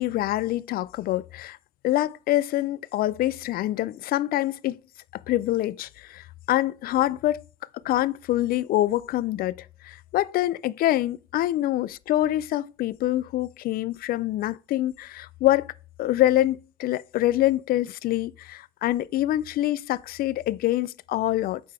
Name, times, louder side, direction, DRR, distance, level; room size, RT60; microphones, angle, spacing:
voice 1, 0.0-1.6 1.8-4.8 5.3-7.4 7.8-15.7 16.0-21.6, left 14 dB, 60° left, 0.4 m, -25 dB
8.6 x 4.6 x 3.3 m
cardioid pair, 110°, 17 cm